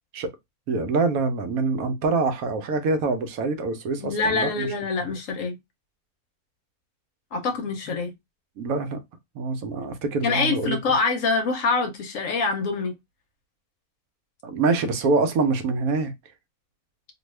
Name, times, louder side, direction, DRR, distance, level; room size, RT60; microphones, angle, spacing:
voice 1, 0.7-4.7 8.6-9.0 9.3-10.8 14.4-16.1, right 3 dB, 75° right, 1.0 m, -25 dB
voice 2, 4.0-5.6 7.3-8.1 10.2-13.0, left 4 dB, 65° left, 1.0 m, -25 dB
2.6 x 2.3 x 3.0 m
omnidirectional pair, 1.6 m